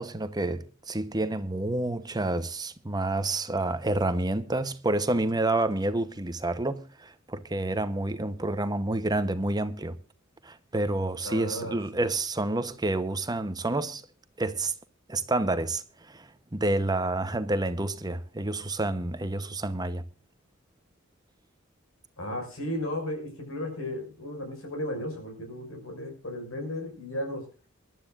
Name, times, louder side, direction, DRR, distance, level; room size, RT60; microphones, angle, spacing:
voice 1, 0.0-9.9 10.4-14.0 14.4-14.7 15.1-20.0, right 2 dB, 20° right, 0.9 m, -29 dB
voice 2, 11.2-11.8 22.2-27.4, left 1 dB, 85° left, 5.8 m, -34 dB
23.5 x 12.0 x 2.5 m
head